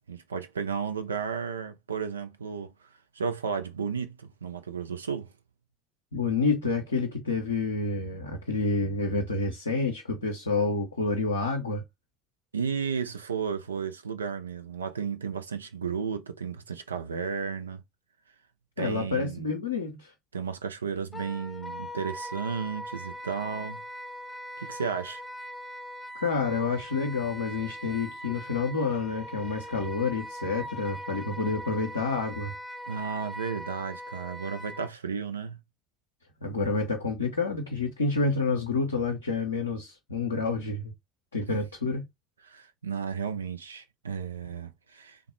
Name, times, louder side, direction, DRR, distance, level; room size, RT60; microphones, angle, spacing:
voice 1, 0.1-2.7 3.1-5.3 12.5-17.8 18.8-19.5 20.3-23.8 24.6-25.2 32.9-35.6 42.5-45.2, right 6 dB, 85° right, 0.4 m, -33 dB
voice 2, 6.1-11.8 18.8-20.1 26.1-32.5 36.4-40.9 41.3-42.0, left 4 dB, 90° left, 0.5 m, -28 dB
Wind instrument woodwind instrument, 21.1-34.9, equal, 15° left, 0.7 m, -41 dB
3.4 x 2.2 x 3.0 m
figure-of-eight pair, 55°, 0 cm